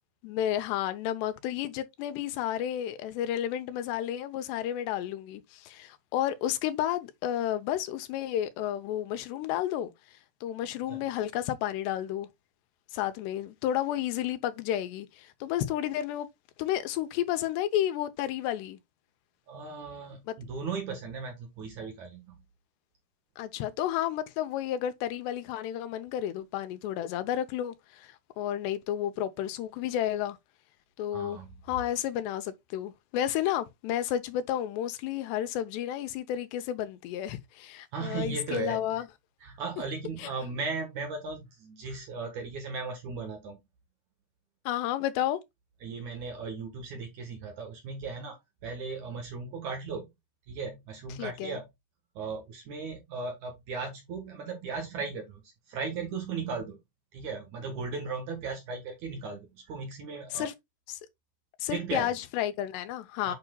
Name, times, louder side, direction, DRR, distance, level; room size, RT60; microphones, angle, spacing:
voice 1, 0.2-9.9 10.4-12.3 12.9-16.3 16.6-18.8 20.3-20.4 23.4-30.4 31.0-39.1 40.2-40.3 44.7-45.4 51.1-51.6 60.3-60.5 60.9-61.0 61.6-63.3, left 11 dB, 85° left, 2.9 m, -31 dB
voice 2, 19.5-22.4 31.1-31.5 37.9-38.8 39.4-43.6 45.8-48.4 48.6-50.1 50.5-51.6 52.2-55.4 55.7-56.8 57.1-60.5 61.7-62.1 63.3-63.4, right 4 dB, 60° right, 2.2 m, -37 dB
8.5 x 5.7 x 2.3 m
omnidirectional pair, 4.8 m